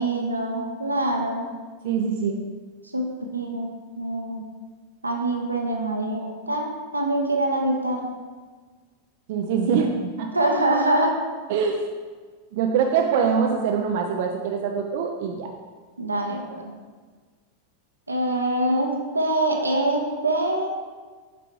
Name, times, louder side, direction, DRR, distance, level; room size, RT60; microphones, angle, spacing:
voice 1, 0.0-1.5 2.9-3.1 3.3-3.7 4.0-4.5 5.0-8.1 10.3-11.1 16.0-16.7 18.1-20.7, right 1 dB, 80° right, 2 dB, 0.8 m, -24 dB
voice 2, 1.8-2.4 9.3-10.3 11.5-11.9 12.5-15.5, right 6 dB, 50° right, 3 dB, 0.5 m, -23 dB
6.9 x 5.9 x 3.0 m, 1.5 s
figure-of-eight pair, 90°, 0 cm